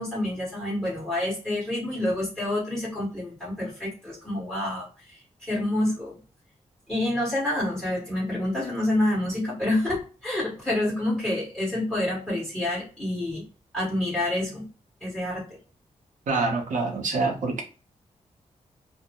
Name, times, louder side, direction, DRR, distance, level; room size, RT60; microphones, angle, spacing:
voice 1, 0.0-6.1 6.9-13.4 13.7-14.7 15.0-15.4, left 1 dB, 5° left, 1.3 m, -28 dB
voice 2, 16.3-17.6, right 3 dB, 85° right, 0.7 m, -26 dB
2.6 x 2.0 x 2.8 m
wide cardioid pair, 170°, 13 cm